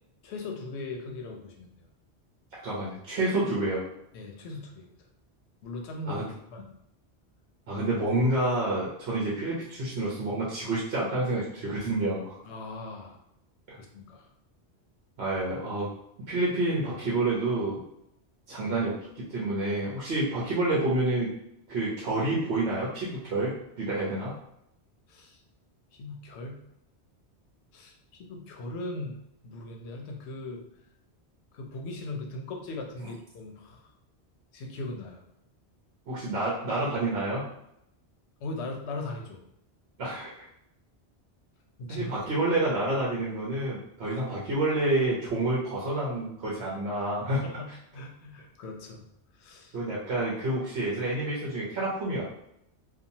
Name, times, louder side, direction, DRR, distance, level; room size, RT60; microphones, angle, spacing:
voice 1, 0.2-1.7 4.1-5.0 5.6-6.7 12.5-13.2 13.8-14.3 25.1-25.4 26.0-26.6 27.7-27.9 28.2-29.2 29.4-30.6 31.5-33.9 34.5-35.2 38.4-39.4 41.8-42.2 46.6-47.2 47.4-47.7 47.9-49.0 49.4-49.8, left 2 dB, 85° left, 2 dB, 0.9 m, -39 dB
voice 2, 2.6-3.8 6.1-6.3 7.7-12.4 13.7-13.8 15.2-15.9 16.3-17.8 18.5-21.3 21.7-24.4 36.1-37.5 40.0-40.4 41.9-47.5 49.7-52.2, right 2 dB, 70° right, -6 dB, 1.0 m, -28 dB
2.8 x 2.3 x 2.7 m, 0.79 s
omnidirectional pair, 1.1 m